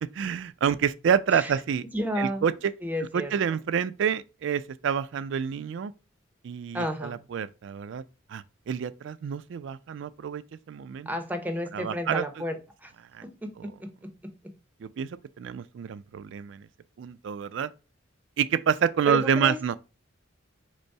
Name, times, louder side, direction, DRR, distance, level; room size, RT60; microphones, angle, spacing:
voice 1, 0.0-1.8 2.2-2.5 3.1-5.9 6.4-8.0 8.3-10.4 10.7-11.1 11.7-12.3 13.1-13.2 14.8-16.7 17.0-17.7 18.4-19.8, right 7 dB, 65° right, 0.3 m, -28 dB
voice 2, 1.9-2.5 2.8-3.4 6.7-7.2 11.1-12.9 13.2-13.7 14.0-14.1 19.1-19.8, equal, 10° right, 0.6 m, -32 dB
5.2 x 2.0 x 4.5 m
head